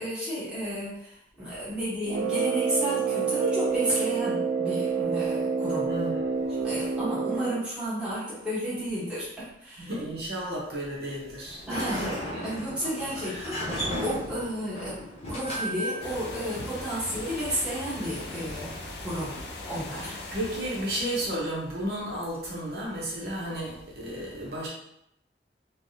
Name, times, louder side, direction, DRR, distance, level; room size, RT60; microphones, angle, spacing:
voice 1, 0.0-5.9 6.6-9.9 11.7-15.0 15.3-18.7 19.0-19.3 19.7-20.1, equal, 5° right, -11 dB, 1.1 m, -32 dB
Brass instrument, 2.0-7.6, right 5 dB, 85° right, 0.3 m, -28 dB
voice 2, 5.8-6.5 9.8-12.1 13.2-13.5 19.9-24.7, right 1 dB, 60° right, -5 dB, 0.8 m, -33 dB
Sliding door, 11.5-19.0, equal, 35° left, 0.8 m, -36 dB
sound 1, 16.0-21.6, left 2 dB, 70° left, 0.5 m, -40 dB
3.3 x 2.3 x 2.7 m, 0.80 s
head